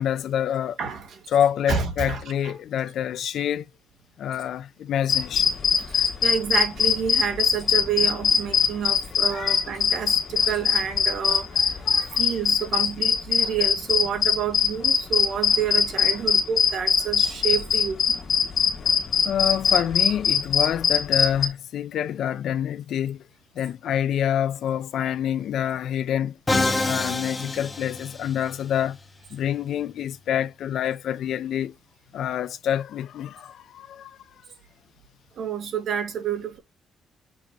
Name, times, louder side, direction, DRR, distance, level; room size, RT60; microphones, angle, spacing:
voice 1, 0.0-0.8 1.3-3.7 4.2-5.5 9.3-9.6 11.8-12.2 19.2-23.2 23.6-26.4 26.8-29.0 29.3-31.7 32.1-34.2, left 10 dB, 75° left, 0.6 m, -27 dB
voice 2, 0.8-1.2 1.7-2.2 5.9-11.8 12.1-18.0 35.4-36.6, right 8 dB, 65° right, 2.4 m, -29 dB
sound 1, 5.1-21.5, left 6 dB, 50° left, 1.8 m, -22 dB
Musical instrument, 26.5-28.6, left 2 dB, 15° left, 1.2 m, -26 dB
7.0 x 3.0 x 5.0 m
cardioid pair, 140°, 0 cm